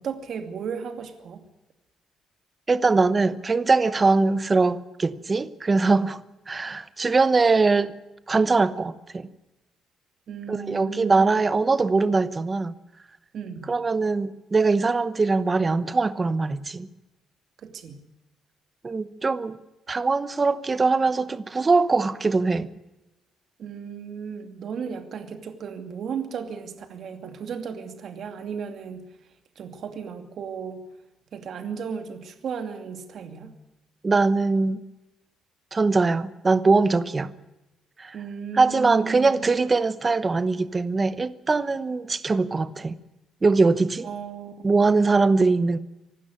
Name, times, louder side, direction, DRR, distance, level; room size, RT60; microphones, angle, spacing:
voice 1, 0.0-1.4 10.3-11.3 13.3-13.7 17.6-18.0 23.6-29.0 29.6-30.9 31.3-33.5 38.1-39.5 44.0-45.1, right 6 dB, 45° right, 2.5 m, -35 dB
voice 2, 2.7-6.2 6.5-7.9 8.3-9.3 10.5-12.7 13.7-16.9 18.8-19.6 19.9-22.7 34.0-34.8 35.7-37.3 38.0-38.2 38.5-42.9 43.4-44.1 44.6-45.8, right 3 dB, 20° right, 0.9 m, -22 dB
25.0 x 12.5 x 9.9 m
cardioid pair, 180°, 0 cm